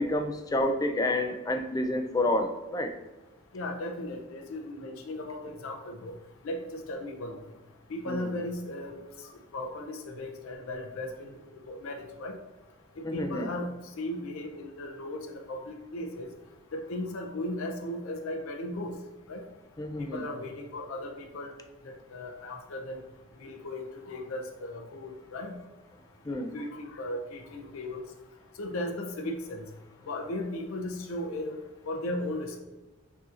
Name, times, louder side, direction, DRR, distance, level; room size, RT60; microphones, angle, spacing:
voice 1, 0.0-2.9 8.1-8.3 13.0-13.5 19.8-20.2 26.2-26.5, left 1 dB, 15° left, 5 dB, 0.3 m, -29 dB
voice 2, 3.5-6.1 6.4-7.4 7.9-8.9 9.5-11.4 11.7-12.3 13.1-16.3 16.7-18.9 19.3-19.4 20.0-21.5 21.8-23.0 23.4-25.6 26.3-28.0 28.6-29.6 30.1-31.5 31.9-32.6, left 1 dB, 75° left, 3 dB, 0.5 m, -36 dB
6.6 x 2.8 x 2.4 m, 1.1 s
head